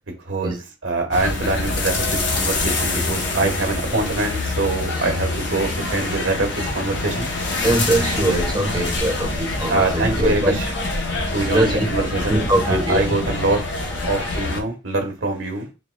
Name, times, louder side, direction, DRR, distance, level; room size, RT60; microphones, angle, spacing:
voice 1, 0.3-7.3 9.7-10.7 11.3-13.6 14.0-15.7, right 2 dB, 65° right, 1.3 m, -24 dB
sound 1, 1.1-14.6, left 2 dB, 60° left, 0.8 m, -25 dB
voice 2, 7.6-10.6 11.5-11.8 12.3-13.2, right 1 dB, 20° right, 1.0 m, -22 dB
4.3 x 3.6 x 2.2 m
head